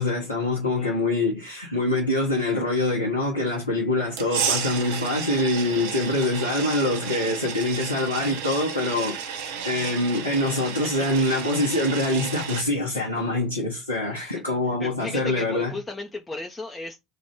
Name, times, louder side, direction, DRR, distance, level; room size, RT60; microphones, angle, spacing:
voice 1, 0.0-9.2 9.6-15.7, left 2 dB, 85° left, 1.0 m, -25 dB
voice 2, 0.6-1.0 14.1-17.0, left 2 dB, 15° left, 0.8 m, -36 dB
sound 1, 4.2-12.6, right 7 dB, 60° right, 0.7 m, -32 dB
4.2 x 2.6 x 3.5 m
figure-of-eight pair, 65°, 0 cm